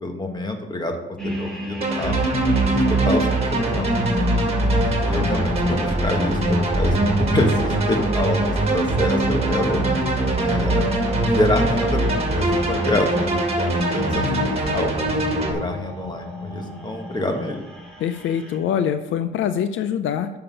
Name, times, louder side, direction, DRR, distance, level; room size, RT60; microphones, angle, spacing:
voice 1, 0.0-1.0 1.2-2.2 2.7-4.1 4.7-9.8 10.4-10.9 11.3-13.3 13.6-14.9 15.4-17.6, left 1 dB, 20° left, 4 dB, 1.5 m, -26 dB
sound 1, 1.2-18.6, equal, 5° left, 2.2 m, -31 dB
sound 2, 1.8-15.5, right 2 dB, 30° right, 2.0 m, -22 dB
voice 2, 14.2-14.5 18.0-20.3, left 9 dB, 80° left, 10 dB, 0.5 m, -24 dB
6.8 x 5.8 x 7.0 m, 1.1 s
cardioid pair, 90°, 20 cm